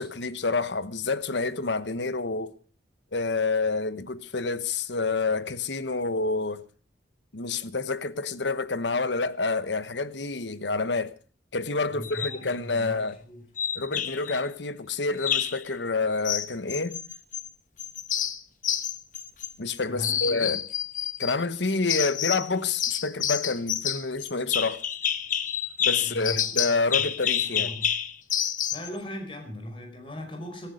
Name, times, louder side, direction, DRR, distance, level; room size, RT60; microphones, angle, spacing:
voice 1, 0.0-2.5 3.1-6.6 7.3-11.1 11.5-13.2 13.7-17.0 19.6-20.6 21.2-24.8 25.8-27.7, left 3 dB, 80° left, 1.2 m, -28 dB
voice 2, 11.9-13.5 19.9-20.6 26.0-26.5 27.4-27.9 28.7-30.7, equal, 30° left, 5.0 m, -39 dB
sound 1, 12.0-12.4 13.6-14.4 15.2-15.6 16.2-17.5 17.8-19.7 20.0-21.4 21.9-22.5 22.8-28.9, left 9 dB, 45° left, 1.1 m, -28 dB
17.5 x 15.0 x 5.2 m
head